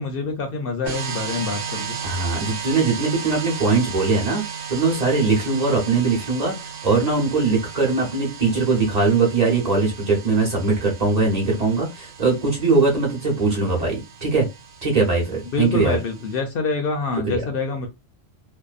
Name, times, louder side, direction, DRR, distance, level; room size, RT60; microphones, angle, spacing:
voice 1, 0.0-2.0 15.5-17.9, left 4 dB, 65° left, 0.7 m, -26 dB
sound 1, 0.8-16.4, right 7 dB, 75° right, 0.9 m, -35 dB
voice 2, 2.0-4.4 4.7-6.5 6.8-14.5 14.8-16.0 17.2-17.4, right 3 dB, 40° right, 1.1 m, -21 dB
2.6 x 2.1 x 2.4 m
omnidirectional pair, 1.1 m